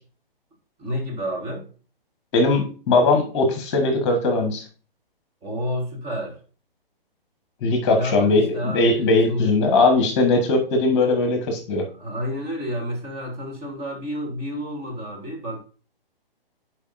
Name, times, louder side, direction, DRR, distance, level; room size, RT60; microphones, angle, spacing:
voice 1, 0.8-1.7 5.4-6.4 7.9-9.6 12.0-15.6, equal, 20° right, 1.4 m, -30 dB
voice 2, 2.3-4.6 7.6-11.9, left 3 dB, 30° left, 1.4 m, -20 dB
10.5 x 4.7 x 2.6 m
figure-of-eight pair, 130°, 29 cm